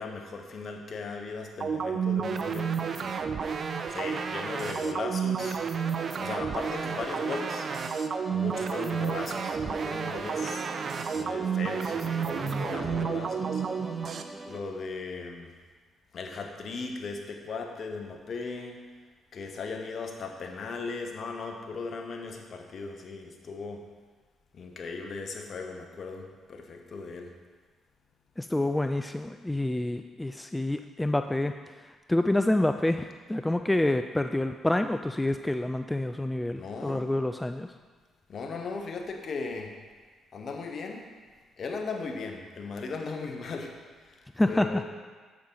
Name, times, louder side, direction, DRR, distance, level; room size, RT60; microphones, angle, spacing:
voice 1, 0.0-3.1 3.9-5.6 6.2-7.7 8.3-10.7 11.1-13.6 14.4-15.5 16.1-18.8 19.3-23.8 24.5-27.3 36.5-37.1 38.3-39.7 40.3-41.1 41.6-44.8, left 4 dB, 55° left, 3 dB, 1.2 m, -37 dB
sound 1, 1.6-14.2, right 6 dB, 55° right, 0.6 m, -31 dB
sound 2, 5.9-14.6, right 1 dB, 20° right, 0.9 m, -43 dB
voice 2, 28.4-37.7 44.4-44.8, left 1 dB, 15° left, 7 dB, 0.4 m, -28 dB
8.6 x 7.3 x 3.9 m, 1.4 s
hypercardioid pair, 50°, 0 cm